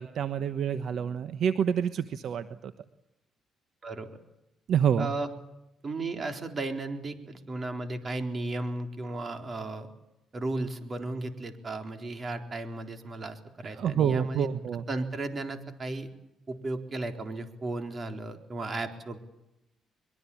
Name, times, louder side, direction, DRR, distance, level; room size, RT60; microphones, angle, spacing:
voice 1, 0.0-2.7 4.7-5.1 13.7-14.8, right 8 dB, 70° right, 11 dB, 1.2 m, -27 dB
voice 2, 3.8-4.2 5.0-5.3 5.8-9.9 10.3-14.5 14.9-16.1 16.5-19.2, right 2 dB, 35° right, 6 dB, 4.1 m, -35 dB
23.5 x 22.5 x 8.7 m, 0.88 s
cardioid pair, 90°, 0 cm